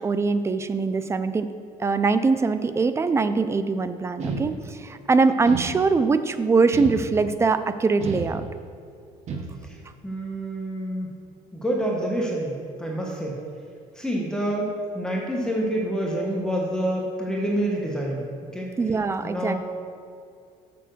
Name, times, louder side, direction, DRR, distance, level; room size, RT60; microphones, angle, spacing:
voice 1, 0.0-1.5 1.8-8.4 18.8-19.6, right 4 dB, 20° right, 11 dB, 0.4 m, -22 dB
sound 1, 4.2-5.0 5.4-6.2 6.7-7.5 8.0-8.8 9.3-9.9, right 4 dB, 55° right, 1.2 m, -33 dB
voice 2, 10.0-11.1 11.5-13.4 13.9-18.2 18.5-18.7 19.2-19.6, right 1 dB, 5° left, -2 dB, 1.2 m, -27 dB
6.8 x 5.4 x 6.5 m, 2.4 s
cardioid pair, 120°, 14 cm